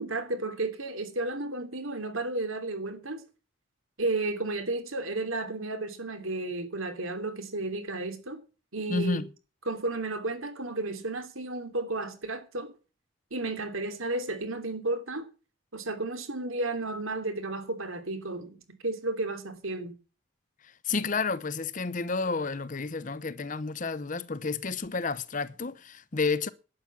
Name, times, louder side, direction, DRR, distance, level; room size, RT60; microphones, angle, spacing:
voice 1, 0.0-3.2 4.0-8.4 8.7-9.2 9.7-12.7 13.3-15.3 15.7-19.9, right 2 dB, 80° right, 3.1 m, -33 dB
voice 2, 8.9-9.3 20.8-26.5, left 4 dB, 40° left, 0.7 m, -30 dB
12.0 x 9.9 x 7.1 m
head